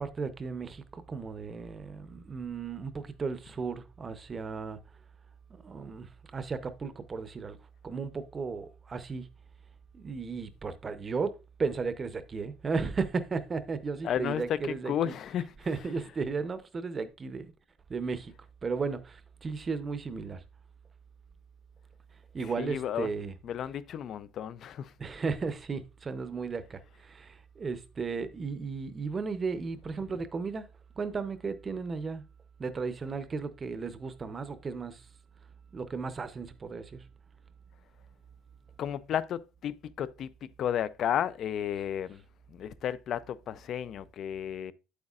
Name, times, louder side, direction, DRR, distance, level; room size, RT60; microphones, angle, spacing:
voice 1, 0.0-4.8 5.6-7.6 7.8-9.3 9.9-15.2 15.7-17.5 17.9-18.3 18.6-20.4 22.3-23.3 25.0-30.7 31.0-32.2 32.6-35.1 35.7-37.0, right 4 dB, 20° right, 0.7 m, -35 dB
voice 2, 14.0-15.5 22.6-23.1 23.4-24.9 38.8-40.3 40.6-42.2 42.5-44.7, left 9 dB, 45° left, 0.4 m, -33 dB
8.7 x 8.1 x 2.4 m
cardioid pair, 150°, 0 cm